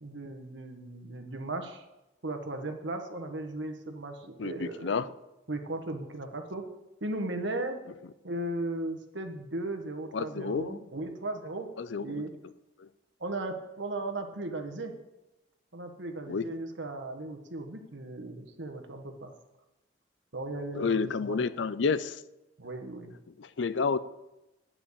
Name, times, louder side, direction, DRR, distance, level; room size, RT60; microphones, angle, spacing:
voice 1, 0.0-1.8 2.2-5.1 5.5-6.6 7.0-7.8 8.2-11.7 12.0-12.3 13.2-14.9 15.7-19.3 20.3-21.4 22.6-23.1, right 2 dB, 75° right, 5 dB, 1.4 m, -36 dB
voice 2, 4.4-5.1 10.1-10.8 11.8-12.3 12.8-12.9 16.3-16.5 20.7-22.2 23.4-24.0, left 5 dB, 75° left, 16 dB, 0.5 m, -30 dB
9.6 x 5.8 x 8.4 m, 0.97 s
head